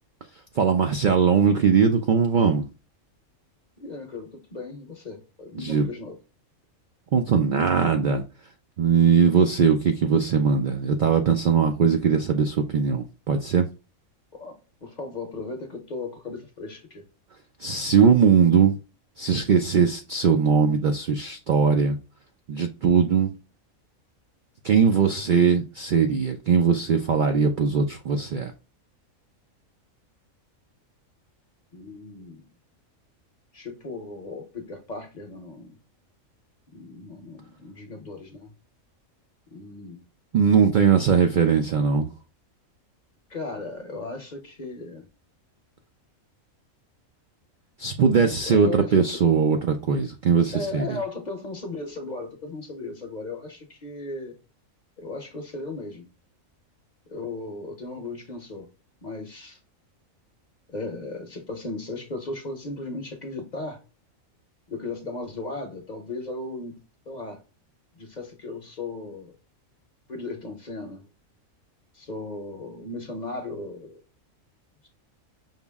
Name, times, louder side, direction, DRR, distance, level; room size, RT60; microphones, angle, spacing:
voice 1, 0.6-2.7 5.6-5.9 7.1-8.2 8.8-13.7 17.6-18.8 19.2-22.0 22.5-23.3 24.6-28.5 40.3-42.1 47.8-50.8, right 6 dB, 75° right, 0.4 m, -20 dB
voice 2, 3.8-6.2 14.3-17.0 31.7-32.5 33.5-35.8 36.7-38.5 39.5-40.0 43.3-45.0 48.4-49.2 50.5-54.3 55.0-56.1 57.1-58.7 59.0-59.6 60.7-63.8 64.7-67.4 68.0-69.3 70.1-71.1 71.9-74.0, left 3 dB, 40° left, 0.8 m, -36 dB
5.6 x 2.0 x 3.4 m
omnidirectional pair, 1.4 m